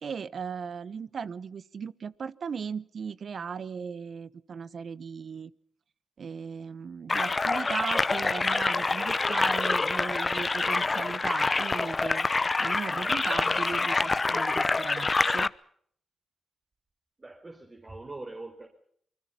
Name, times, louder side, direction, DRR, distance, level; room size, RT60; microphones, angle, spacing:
voice 1, 0.0-5.5 6.2-12.3 12.6-15.5, right 6 dB, 60° right, 18 dB, 0.9 m, -37 dB
sound 1, 7.1-15.5, left 3 dB, 35° left, 0.8 m, -26 dB
voice 2, 17.2-18.7, right 2 dB, 30° right, 4 dB, 4.4 m, -42 dB
27.5 x 21.0 x 5.8 m, 0.64 s
supercardioid pair, 50°, 0 cm